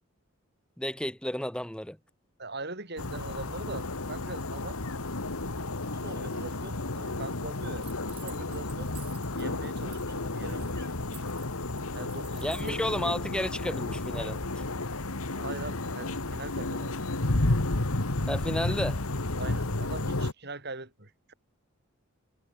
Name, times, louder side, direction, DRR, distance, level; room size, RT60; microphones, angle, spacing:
voice 1, 0.8-2.0 12.4-14.6 18.3-19.0, left 1 dB, 5° left, 1.3 m, -32 dB
voice 2, 2.4-4.8 5.8-7.9 8.2-8.9 9.4-10.9 11.9-12.8 15.4-17.6 19.4-21.3, right 2 dB, 50° right, 4.9 m, -42 dB
sound 1, 3.0-20.3, left 2 dB, 85° left, 1.9 m, -32 dB
sound 2, 7.8-9.5 9.8-10.1 10.4-12.8, right 10 dB, 25° right, 7.5 m, -51 dB
head